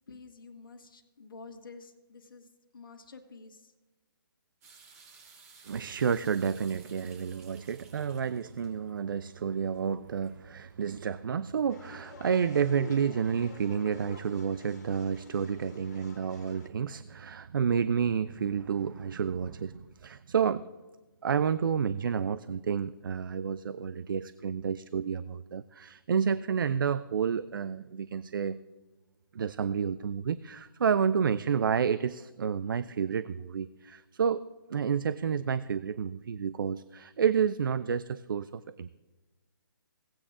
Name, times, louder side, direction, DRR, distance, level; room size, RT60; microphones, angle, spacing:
voice 1, 0.1-2.5 2.7-3.7, left 4 dB, 65° left, 4 dB, 1.4 m, -49 dB
sound 1, 4.6-11.5, right 5 dB, 40° right, 2.7 m, -57 dB
voice 2, 5.7-20.7 21.2-28.6 29.3-34.4 34.7-38.9, right 7 dB, 65° right, 15 dB, 0.4 m, -30 dB
sound 2, 11.7-16.7, left 3 dB, 40° left, 1.9 m, -50 dB
17.5 x 8.5 x 2.4 m, 1.2 s
figure-of-eight pair, 140°, 12 cm